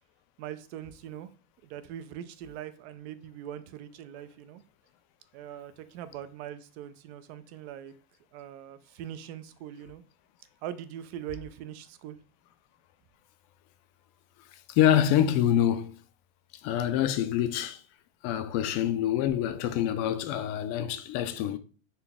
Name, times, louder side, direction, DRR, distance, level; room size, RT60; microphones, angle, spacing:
voice 1, 0.4-1.3 1.6-4.6 5.3-7.9 8.3-10.0 10.6-12.2, right 11 dB, 70° right, 0.5 m, -41 dB
voice 2, 14.7-15.9 16.6-17.8 18.2-21.6, left 10 dB, 50° left, 0.4 m, -26 dB
4.1 x 2.2 x 3.4 m
supercardioid pair, 145°, 33 cm